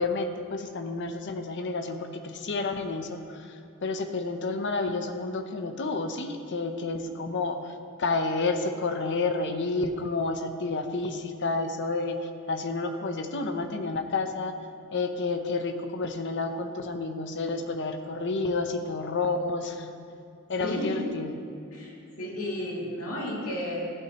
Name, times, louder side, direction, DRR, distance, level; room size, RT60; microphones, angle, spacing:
voice 1, 0.0-14.5 14.9-19.9 20.5-21.3, left 3 dB, 55° left, 7 dB, 0.7 m, -30 dB
voice 2, 20.6-21.1 21.7-23.9, left 1 dB, 80° left, -5 dB, 2.5 m, -33 dB
15.5 x 8.6 x 3.0 m, 2.4 s
head